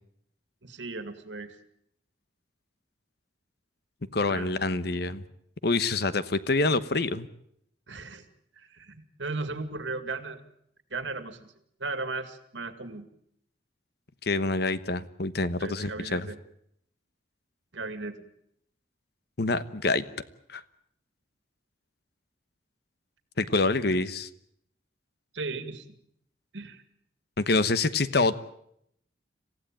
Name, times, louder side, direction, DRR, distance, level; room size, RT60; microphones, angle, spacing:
voice 1, 0.6-1.6 4.3-4.5 7.9-8.3 8.5-10.4 10.9-11.5 11.8-13.1 15.6-16.4 17.7-18.3 23.9-24.0 25.3-25.8 26.5-26.8, right 3 dB, 85° right, 9 dB, 2.3 m, -36 dB
voice 2, 4.1-5.2 5.6-7.3 14.2-16.3 19.4-20.0 20.5-20.6 23.4-24.3 27.4-28.3, left 3 dB, 60° left, 14 dB, 1.1 m, -26 dB
26.5 x 15.5 x 9.0 m, 0.75 s
head